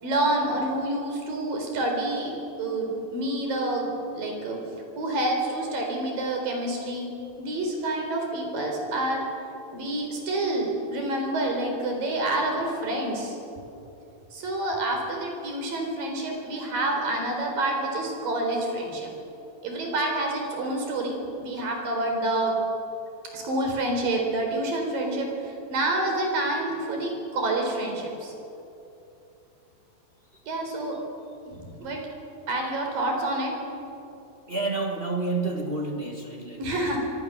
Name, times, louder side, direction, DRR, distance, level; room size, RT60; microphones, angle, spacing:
voice 1, 0.0-4.6 5.0-7.1 7.4-9.3 9.7-13.4 14.3-19.1 19.6-22.6 23.3-28.3 30.5-31.0 31.5-32.0 32.5-33.6 36.6-37.0, right 2 dB, 70° right, 2 dB, 5.9 m, -28 dB
voice 2, 34.5-37.0, right 3 dB, 50° right, 2 dB, 0.6 m, -30 dB
25.5 x 24.0 x 6.9 m, 2.8 s
omnidirectional pair, 4.1 m